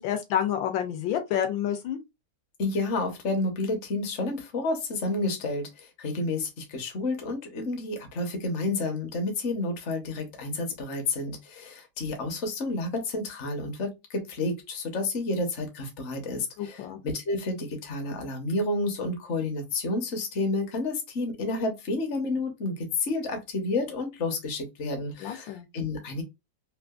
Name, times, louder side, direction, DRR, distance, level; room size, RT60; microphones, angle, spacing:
voice 1, 0.0-2.0 16.6-17.0 25.2-25.7, left 9 dB, 80° left, 1.4 m, -29 dB
voice 2, 2.6-26.2, left 2 dB, 45° left, 1.0 m, -30 dB
3.6 x 2.5 x 2.3 m
omnidirectional pair, 2.1 m